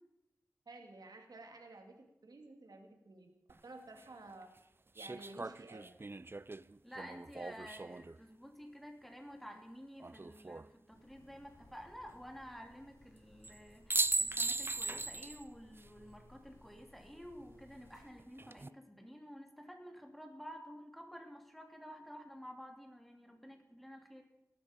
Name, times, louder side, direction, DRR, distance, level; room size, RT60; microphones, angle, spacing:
voice 1, 0.7-4.7 4.9-6.0, right 2 dB, 85° right, 4 dB, 2.6 m, -53 dB
sound 1, 3.5-3.6 5.0-8.2 10.0-10.7 13.4-13.6 13.9-15.4 15.8-15.9 18.2-18.7, right 3 dB, 35° right, 0.5 m, -38 dB
voice 2, 6.8-24.2, equal, ahead, 3 dB, 3.0 m, -51 dB
sound 2, 10.9-18.0, left 1 dB, 80° left, 5.3 m, -62 dB
18.5 x 12.5 x 5.2 m, 0.89 s
wide cardioid pair, 60°, 7 cm